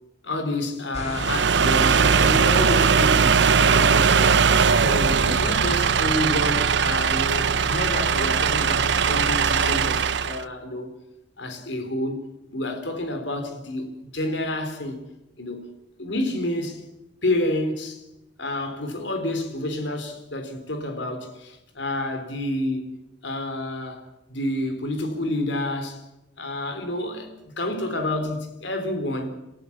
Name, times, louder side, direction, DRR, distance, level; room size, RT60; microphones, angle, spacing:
voice 1, 0.2-4.5 4.8-10.9 11.4-12.2 12.5-15.0 15.4-15.7 16.0-16.8 17.2-18.0 18.4-22.9 23.2-26.0 26.4-29.4, left 1 dB, 70° left, 3.8 m, -29 dB
sound 1, 0.9-6.1, equal, 35° left, 5.6 m, -36 dB
sound 2, 1.1-10.4, right 6 dB, 65° right, 0.7 m, -20 dB
28.0 x 14.5 x 7.3 m
head